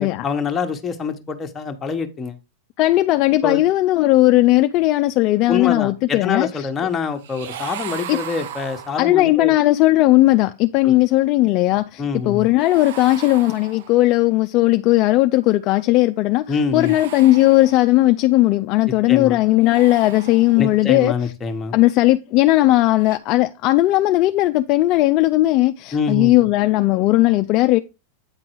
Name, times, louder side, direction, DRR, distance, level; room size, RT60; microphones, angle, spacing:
voice 1, 0.0-2.3 3.4-3.6 5.5-9.5 10.8-11.0 12.0-12.5 16.5-16.9 19.1-19.4 20.6-21.8 25.9-26.3, left 5 dB, 20° left, 1.1 m, -25 dB
voice 2, 2.8-6.5 8.1-8.2 9.0-21.1 21.7-27.8, left 17 dB, 45° left, 0.4 m, -17 dB
sound 1, 7.2-9.4 12.6-14.2 16.6-18.2 19.5-20.9 22.9-23.2, right 9 dB, 70° right, 0.6 m, -37 dB
8.8 x 3.9 x 4.6 m
supercardioid pair, 135°, 0 cm